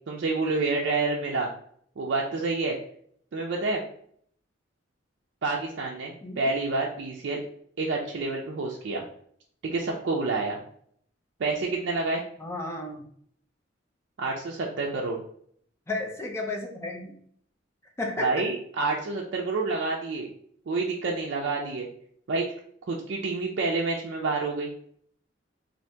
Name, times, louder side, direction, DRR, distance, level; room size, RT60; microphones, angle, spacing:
voice 1, 0.1-1.5 2.0-2.8 3.3-3.8 5.4-7.4 7.8-9.0 9.6-10.6 11.4-12.2 14.2-15.2 18.2-20.3 20.7-21.9 22.3-22.5 22.9-24.7, right 3 dB, 65° right, -1 dB, 0.4 m, -28 dB
voice 2, 12.4-13.0 15.9-17.2 18.0-18.3, left 2 dB, 15° left, 1 dB, 0.5 m, -33 dB
2.7 x 2.5 x 3.3 m, 0.63 s
head